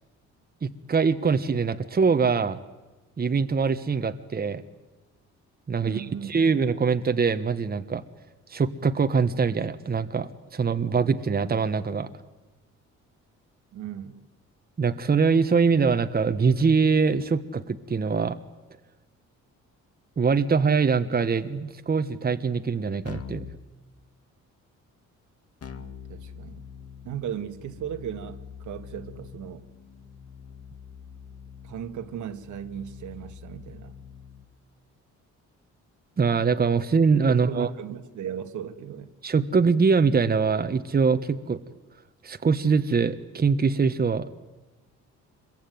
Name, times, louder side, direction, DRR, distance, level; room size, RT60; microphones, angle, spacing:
voice 1, 0.6-2.6 3.2-4.6 5.7-8.0 8.5-12.1 14.8-18.4 20.2-23.5 36.2-37.7 39.2-41.6 42.2-44.3, right 5 dB, 30° right, 9 dB, 1.4 m, -23 dB
voice 2, 5.8-6.4 13.7-14.2 25.8-26.6 27.0-29.6 31.6-33.9 37.3-39.1, right 9 dB, 75° right, 8 dB, 2.0 m, -36 dB
Keyboard (musical), 23.1-23.6 25.6-34.5, left 7 dB, 50° left, 2.3 m, -44 dB
26.0 x 22.5 x 9.5 m, 1.1 s
cardioid pair, 90°, 30 cm